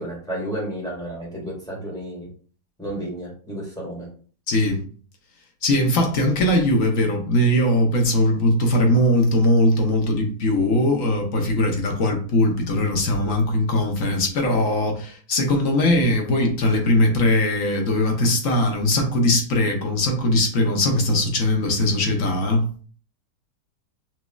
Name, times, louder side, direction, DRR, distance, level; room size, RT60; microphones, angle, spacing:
voice 1, 0.0-2.3 2.8-4.1, right 1 dB, ahead, -4 dB, 1.7 m, -31 dB
voice 2, 4.5-4.8 5.6-22.6, left 1 dB, 55° left, 2 dB, 1.2 m, -20 dB
6.0 x 2.8 x 2.3 m, 0.43 s
omnidirectional pair, 1.8 m